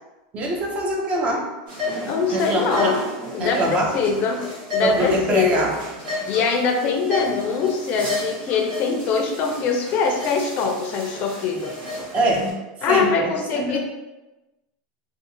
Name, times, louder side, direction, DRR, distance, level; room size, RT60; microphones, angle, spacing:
voice 1, 0.3-1.6 2.3-3.1 3.4-4.1 4.8-5.9 12.0-12.5 12.9-13.8, right 1 dB, 30° right, 1 dB, 0.4 m, -24 dB
sound 1, 1.7-12.5, left 2 dB, 45° right, 1.1 m, -32 dB
voice 2, 2.1-3.0 3.3-4.4 4.7-5.7 6.3-11.8 12.8-13.8, left 4 dB, 40° left, 3 dB, 0.4 m, -22 dB
2.5 x 2.3 x 2.9 m, 1.1 s
supercardioid pair, 145°, 4 cm